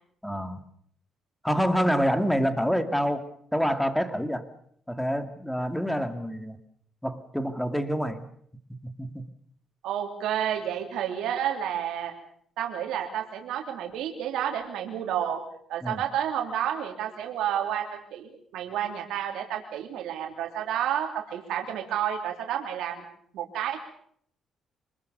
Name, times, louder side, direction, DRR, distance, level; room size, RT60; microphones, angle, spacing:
voice 1, 0.2-0.6 1.4-3.3 3.5-4.4 4.9-6.6 7.0-8.2 8.7-9.3 15.8-16.0, equal, 5° left, 10 dB, 2.4 m, -27 dB
voice 2, 9.8-12.1 12.6-15.4 15.7-23.0 23.3-23.8, right 10 dB, 85° right, 3 dB, 3.2 m, -30 dB
26.0 x 21.0 x 6.7 m, 0.63 s
cardioid pair, 90°, 0 cm